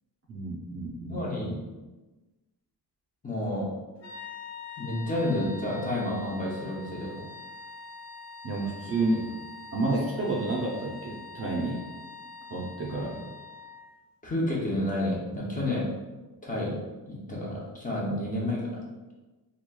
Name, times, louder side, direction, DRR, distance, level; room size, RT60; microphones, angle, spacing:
voice 1, 0.3-1.6 8.4-9.3 9.7-11.9 12.5-13.2, right 2 dB, 35° right, -4 dB, 0.5 m, -30 dB
voice 2, 1.1-1.6 3.2-3.7 4.8-7.1 14.2-15.9 16.4-16.8 17.1-18.8, left 1 dB, 20° left, -5 dB, 0.6 m, -30 dB
sound 1, 4.0-14.0, left 4 dB, 70° left, 1.0 m, -44 dB
3.0 x 2.4 x 2.2 m, 1.2 s
cardioid pair, 115°, 42 cm